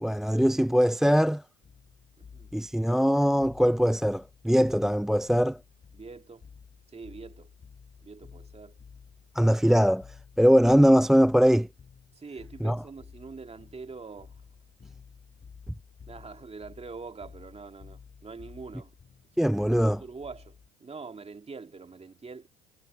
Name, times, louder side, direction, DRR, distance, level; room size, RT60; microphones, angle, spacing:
voice 1, 0.0-1.4 2.5-5.6 9.4-10.1 10.4-11.7 12.6-12.8 19.4-20.0, equal, ahead, 0.4 m, -21 dB
sound 1, 1.6-20.7, left 6 dB, 30° left, 7.3 m, -52 dB
voice 2, 5.9-6.5 6.9-7.5 8.0-8.8 12.2-14.4 16.1-18.9 19.3-19.4 19.7-22.5, right 4 dB, 20° right, 2.2 m, -44 dB
hypercardioid pair, 70°, 30 cm